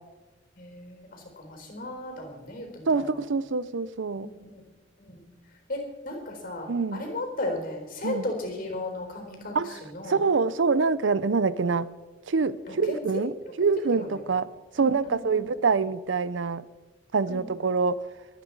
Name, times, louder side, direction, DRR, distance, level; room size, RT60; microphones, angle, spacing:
voice 1, 0.6-3.2 4.2-4.6 5.0-5.2 5.7-10.2 12.7-12.8 13.9-14.2 14.7-15.5 17.3-17.5, left 1 dB, 50° left, 4.2 m, -36 dB
voice 2, 2.9-4.3 6.7-7.0 8.0-8.3 9.5-9.8 10.1-11.9 12.3-14.5 14.7-16.6 17.1-18.1, right 4 dB, 85° right, 0.6 m, -25 dB
22.5 x 9.3 x 4.7 m
head